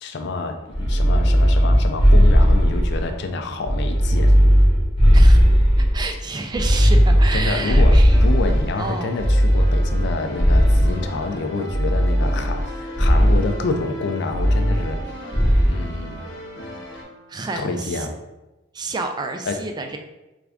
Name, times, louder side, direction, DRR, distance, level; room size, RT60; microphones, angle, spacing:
voice 1, 0.0-4.3 7.3-15.4 15.7-16.2 17.5-18.2 19.5-19.6, left 3 dB, 65° left, 6 dB, 0.4 m, -28 dB
sound 1, 0.7-3.1 3.6-6.1 6.5-8.7 9.2-11.1 11.7-12.7 12.9-13.4 14.3-15.0 15.3-15.8, equal, 25° left, 1.0 m, -16 dB
voice 2, 5.1-5.4 5.8-9.1 17.3-18.1 18.7-20.0, right 3 dB, 20° right, 5 dB, 0.3 m, -30 dB
sound 2, 6.6-17.0, equal, 80° left, 0.9 m, -40 dB
Wind instrument woodwind instrument, 9.5-17.7, right 1 dB, 55° right, 0.6 m, -41 dB
3.4 x 2.5 x 3.4 m, 1.0 s
head